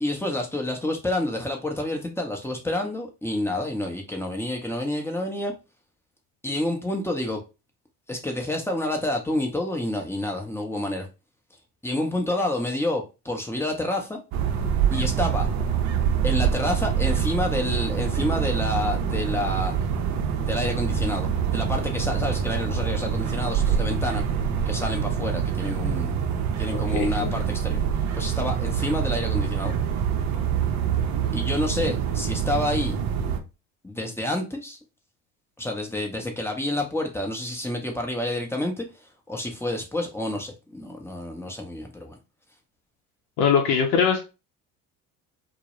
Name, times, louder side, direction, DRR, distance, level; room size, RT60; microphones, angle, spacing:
voice 1, 0.0-5.5 6.4-7.4 8.1-11.1 11.8-14.2 14.9-15.5 16.2-19.7 20.4-24.2 24.7-26.1 26.6-27.8 28.1-29.7 31.3-32.9 33.8-34.8 35.6-42.2, left 1 dB, 5° left, 0.6 m, -28 dB
sound 1, 14.3-33.4, right 8 dB, 40° right, 0.5 m, -25 dB
voice 2, 26.7-27.3 43.4-44.2, left 6 dB, 65° left, 0.6 m, -22 dB
2.2 x 2.0 x 2.9 m
hypercardioid pair, 65°, 43 cm